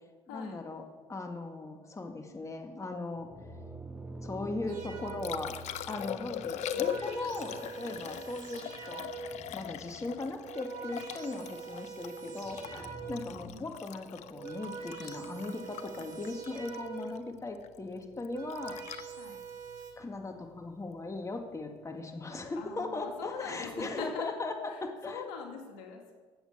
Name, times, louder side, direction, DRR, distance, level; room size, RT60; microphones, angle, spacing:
voice 1, 0.3-0.8 1.1-3.3 4.2-5.6 5.9-9.0 9.5-18.8 20.0-24.6 24.8-25.2, left 3 dB, 25° left, 4 dB, 2.0 m, -38 dB
sound 1, 3.1-10.4 12.4-13.5, right 2 dB, 10° right, 1.6 m, -48 dB
sound 2, 4.7-5.6 6.3-9.5 10.2-13.4 14.1-17.3 18.1-19.9, right 6 dB, 80° right, 3.3 m, -44 dB
Liquid, 4.8-20.9 23.7-23.9, left 11 dB, 65° left, 0.7 m, -42 dB
voice 2, 6.0-6.9 13.1-13.7 16.0-16.2 19.1-19.4 22.5-24.3 24.7-26.1, left 6 dB, 85° left, 2 dB, 2.3 m, -44 dB
16.0 x 8.1 x 6.6 m, 1.4 s
supercardioid pair, 75°, 13 cm